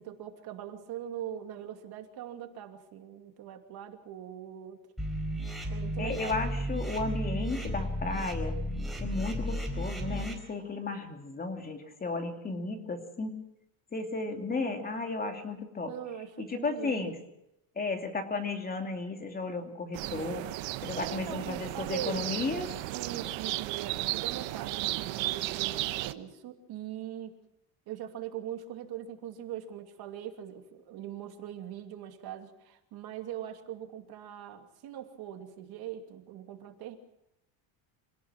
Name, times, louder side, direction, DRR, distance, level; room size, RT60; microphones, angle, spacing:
voice 1, 0.0-4.8 5.7-6.4 15.9-17.1 21.0-22.3 22.9-27.4 27.9-37.0, right 10 dB, 55° right, 5 dB, 2.8 m, -41 dB
sound 1, 5.0-10.3, equal, ahead, 4.6 m, -34 dB
voice 2, 6.0-8.5 9.0-13.4 13.9-15.9 16.4-17.2 17.8-20.4 20.8-22.7, left 3 dB, 20° left, 4 dB, 2.8 m, -34 dB
sound 2, 19.9-26.1, right 17 dB, 75° right, 1.1 m, -34 dB
26.5 x 18.0 x 6.1 m, 0.82 s
cardioid pair, 150°, 46 cm